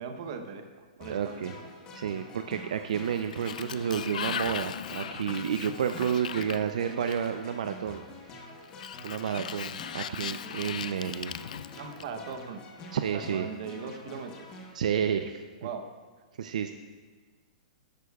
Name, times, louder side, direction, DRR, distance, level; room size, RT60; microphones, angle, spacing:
voice 1, 0.0-1.5 11.7-12.6 13.1-14.6 15.6-15.9, right 5 dB, 40° right, 6 dB, 0.8 m, -39 dB
sound 1, 1.0-14.7, left 2 dB, 20° left, 1.0 m, -47 dB
voice 2, 1.1-1.5 1.9-8.0 8.3-8.5 9.0-11.3 12.9-13.5 14.7-15.4 16.4-16.7, right 8 dB, 60° right, 7 dB, 0.5 m, -30 dB
Sliding door, 2.9-7.5 8.6-12.3, left 9 dB, 70° left, 0.3 m, -38 dB
13.5 x 11.0 x 2.3 m, 1.4 s
hypercardioid pair, 175°, 4 cm